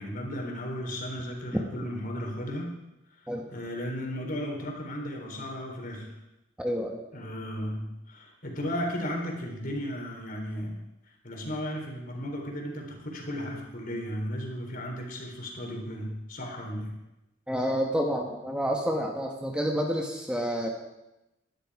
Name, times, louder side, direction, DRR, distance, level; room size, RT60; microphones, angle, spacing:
voice 1, 0.0-2.7 3.5-6.1 7.1-10.8 11.2-16.9, equal, 45° left, 1 dB, 3.8 m, -35 dB
voice 2, 6.6-7.0 17.5-20.7, equal, 5° right, 1 dB, 1.3 m, -29 dB
19.5 x 12.0 x 4.9 m, 0.95 s
head